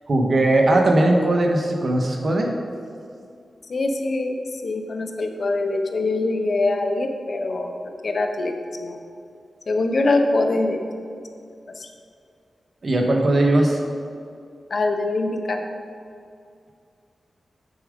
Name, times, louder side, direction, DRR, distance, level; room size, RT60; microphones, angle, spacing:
voice 1, 0.1-2.5 12.8-13.8, right 1 dB, 55° right, 1 dB, 1.3 m, -19 dB
voice 2, 3.7-7.7 8.0-9.0 9.7-10.8 11.8-11.9 14.7-15.6, left 2 dB, 60° left, 5 dB, 0.8 m, -23 dB
9.0 x 4.9 x 5.1 m, 2.4 s
cardioid pair, 50°, 0 cm